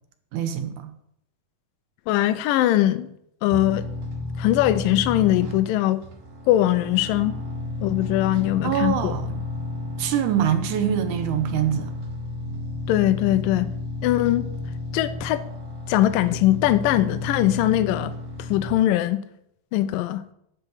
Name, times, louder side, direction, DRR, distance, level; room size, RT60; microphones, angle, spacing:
voice 1, 0.3-0.9 8.6-9.4 10.0-11.9, right 10 dB, 75° right, 9 dB, 1.9 m, -24 dB
voice 2, 2.1-3.1 3.4-3.9 4.4-6.0 6.5-7.3 7.8-9.1 12.9-13.7 14.0-14.5 14.9-15.4 15.9-18.2 18.5-19.2 19.7-20.2, left 14 dB, 75° left, 12 dB, 2.2 m, -21 dB
sound 1, 3.5-18.7, left 2 dB, 50° right, 2.2 m, -32 dB
9.9 x 7.5 x 6.7 m, 0.74 s
omnidirectional pair, 4.3 m